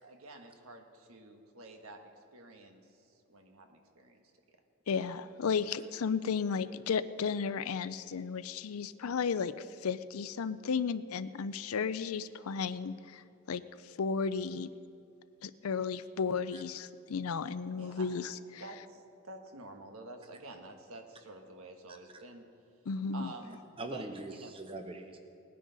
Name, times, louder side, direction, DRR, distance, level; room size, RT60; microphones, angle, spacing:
voice 1, 0.0-3.0 3.3-4.2 17.8-18.1 18.6-22.4 23.1-24.0 24.3-24.5, right 2 dB, 85° right, 4 dB, 1.4 m, -49 dB
voice 2, 4.9-14.7 15.4-18.6 22.9-23.3, left 5 dB, 85° left, 14 dB, 0.5 m, -34 dB
voice 3, 23.8-25.2, right 2 dB, 25° right, 6 dB, 0.9 m, -42 dB
19.5 x 10.0 x 4.0 m, 2.5 s
head